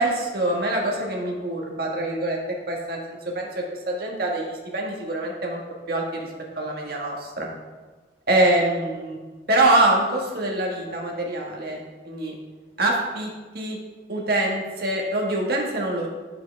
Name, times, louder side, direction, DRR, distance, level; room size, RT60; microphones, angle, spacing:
voice 1, 0.0-2.4 2.7-4.5 4.7-5.6 5.9-6.0 6.6-7.5 8.3-9.2 9.5-12.3 12.8-13.3 13.5-13.8 14.1-16.1, right 1 dB, 55° right, -1 dB, 1.8 m, -24 dB
9.6 x 7.7 x 3.5 m, 1.3 s
head